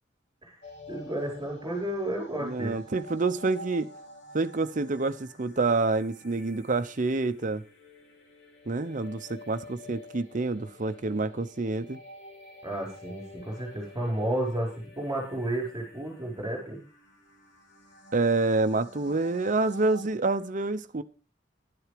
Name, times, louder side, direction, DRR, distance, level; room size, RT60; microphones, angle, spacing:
sound 1, 0.6-20.1, left 1 dB, 80° left, 3.2 m, -50 dB
voice 1, 0.9-2.7 12.6-16.8, right 1 dB, 25° right, 4.8 m, -32 dB
voice 2, 2.4-3.9 4.3-7.6 8.7-12.0 18.1-21.0, right 3 dB, 45° right, 0.7 m, -27 dB
11.5 x 7.9 x 5.0 m
head